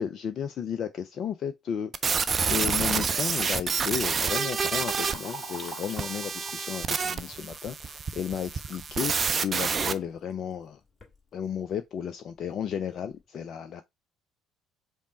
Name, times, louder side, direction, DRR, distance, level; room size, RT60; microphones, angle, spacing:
voice 1, 0.0-2.2 2.5-10.8 11.3-13.8, left 8 dB, 45° left, 0.3 m, -33 dB
sound 1, 1.9-9.9, right 5 dB, 35° right, 0.4 m, -28 dB
Liquid, 4.0-8.9 9.3-9.4 10.3-10.4 10.8-11.1 11.8-11.9 12.4-12.5 12.9-13.1, equal, 20° left, 1.9 m, -46 dB
5.1 x 2.0 x 3.9 m
figure-of-eight pair, 50°, 0 cm